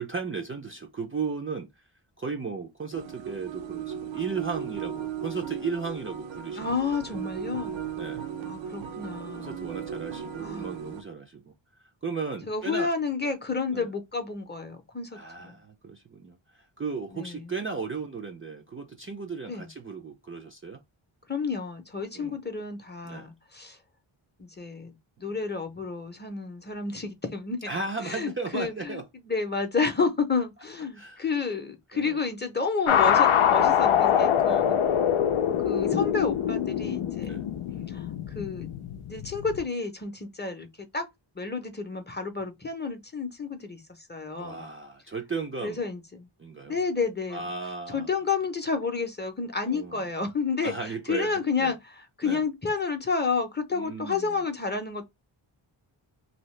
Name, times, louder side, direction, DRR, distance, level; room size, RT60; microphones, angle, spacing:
voice 1, 0.0-1.7 2.2-6.7 8.0-8.3 9.3-11.5 12.0-12.9 13.7-13.9 15.1-20.8 22.1-22.3 23.0-23.3 27.7-29.0 31.0-31.2 31.9-32.2 34.5-34.7 37.2-37.4 44.4-45.8 46.4-46.8 47.3-48.1 49.7-50.0 50.6-51.3 51.6-51.7 52.2-52.4 53.7-54.3, right 4 dB, 30° right, 0.4 m, -35 dB
sound 1, 2.9-11.0, right 8 dB, 70° right, 0.6 m, -36 dB
voice 2, 6.5-7.8 8.4-9.7 10.4-10.7 12.4-15.6 17.1-17.5 19.5-19.7 21.3-23.8 24.4-24.9 25.2-27.7 28.0-34.8 35.6-37.4 37.9-38.7 39.1-40.7 40.9-41.1 41.3-44.6 45.6-46.3 46.7-47.4 47.9-55.1, left 4 dB, 20° left, 0.6 m, -30 dB
sound 2, 32.9-39.6, left 9 dB, 90° left, 0.6 m, -24 dB
2.8 x 2.8 x 3.1 m
wide cardioid pair, 95°, 48 cm